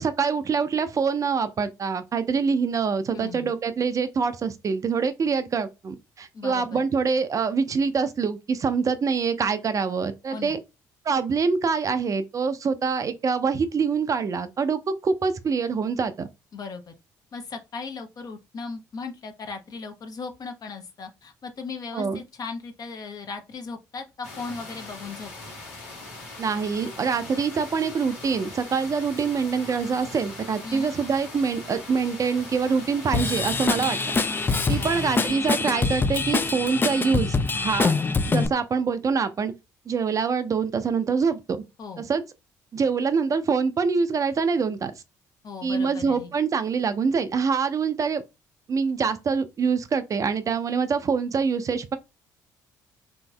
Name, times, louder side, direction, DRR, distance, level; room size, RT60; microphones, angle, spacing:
voice 1, 0.0-10.6 11.0-16.3 21.9-22.2 26.4-34.0 34.7-37.9 38.3-39.5 39.9-41.6 42.0-42.2 42.7-44.9 45.6-48.2 48.7-52.0, right 5 dB, 40° right, 0.5 m, -25 dB
voice 2, 3.1-3.5 6.3-6.8 10.3-10.6 16.5-16.9 17.3-25.3 30.6-30.9 34.8-35.2 41.8-42.1 45.4-46.3, left 4 dB, 45° left, 0.7 m, -37 dB
sound 1, 24.2-35.3, left 2 dB, 85° left, 1.1 m, -41 dB
Drum kit / Drum, 33.1-38.5, left 4 dB, 25° left, 0.3 m, -24 dB
3.0 x 2.6 x 2.2 m
hypercardioid pair, 55°, 9 cm